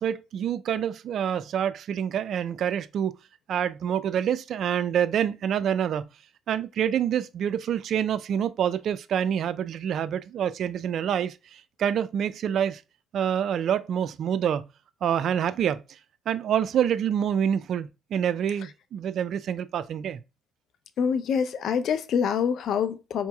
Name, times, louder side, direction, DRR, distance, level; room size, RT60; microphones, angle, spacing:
voice 1, 0.0-3.1 3.5-6.1 6.5-12.8 13.1-14.7 15.0-15.8 16.3-20.2, right 9 dB, 70° right, 0.4 m, -27 dB
voice 2, 21.0-23.3, left 7 dB, 70° left, 0.5 m, -26 dB
4.6 x 3.0 x 2.2 m
cardioid pair, 90°, 0 cm